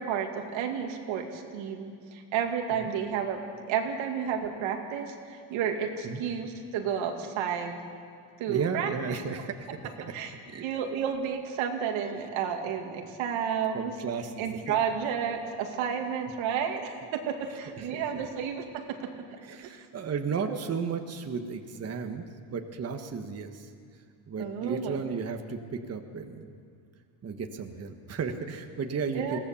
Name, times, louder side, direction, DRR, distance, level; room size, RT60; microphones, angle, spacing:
voice 1, 0.0-3.4 3.7-7.8 8.4-8.9 10.1-10.3 10.6-13.9 14.4-18.6 19.7-19.8 20.5-20.6 24.4-25.0 29.1-29.4, right 7 dB, 90° right, 3 dB, 2.4 m, -31 dB
voice 2, 8.5-10.1 10.5-10.7 13.7-14.8 17.8-18.3 19.4-23.7 24.3-26.5 27.2-29.4, right 5 dB, 30° right, 5 dB, 1.3 m, -34 dB
22.0 x 17.0 x 7.0 m, 2.3 s
cardioid pair, 130°, 46 cm